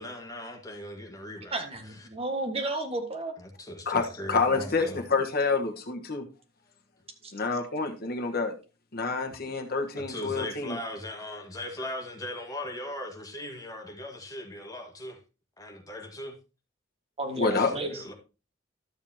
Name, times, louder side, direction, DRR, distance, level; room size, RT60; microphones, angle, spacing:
voice 1, 0.0-2.1 3.4-5.0 10.0-15.2 15.6-16.3 17.5-18.1, left 1 dB, 20° left, 2 dB, 1.8 m, -39 dB
voice 2, 1.5-3.3 7.2-7.3 17.2-17.9, right 2 dB, 30° right, 4 dB, 1.7 m, -32 dB
voice 3, 3.8-6.2 7.3-8.5 8.9-10.8 17.4-17.7, left 4 dB, 55° left, 5 dB, 1.3 m, -28 dB
12.5 x 7.0 x 2.9 m, 0.31 s
head